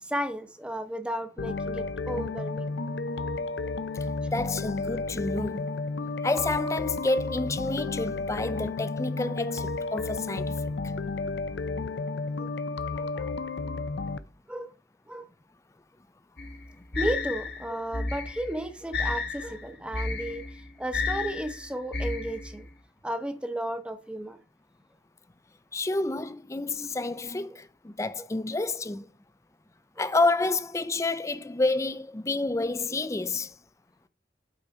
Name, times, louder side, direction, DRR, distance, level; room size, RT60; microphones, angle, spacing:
voice 1, 0.0-2.7 10.9-11.0 12.4-12.5 12.9-13.4 14.5-14.7 15.1-15.3 17.0-22.6 23.0-24.4 30.0-30.1, right 1 dB, 5° right, 0.7 m, -34 dB
sound 1, 1.4-14.2, left 3 dB, 85° left, 0.6 m, -32 dB
voice 2, 4.3-5.7 6.2-10.6 25.7-29.1 30.0-33.5, left 2 dB, 15° left, 0.4 m, -29 dB
sound 2, 16.4-22.7, left 4 dB, 65° left, 1.5 m, -32 dB
8.6 x 4.0 x 4.7 m
head